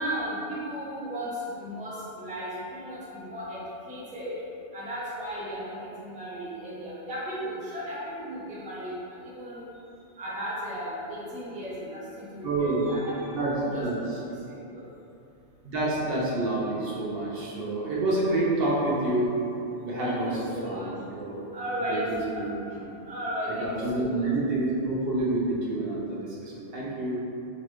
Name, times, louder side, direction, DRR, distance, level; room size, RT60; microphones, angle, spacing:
voice 1, 0.0-3.6 3.9-4.4 4.7-9.7 10.2-13.9 14.7-14.8 20.0-20.9 21.5-22.4 23.1-24.3, equal, 10° right, -8 dB, 0.3 m, -35 dB
voice 2, 12.4-12.9 13.3-14.0 15.6-19.3 19.8-21.4 21.9-22.5 23.6-27.2, right 2 dB, 55° right, -6 dB, 0.8 m, -28 dB
3.9 x 2.2 x 3.0 m, 2.8 s
omnidirectional pair, 1.3 m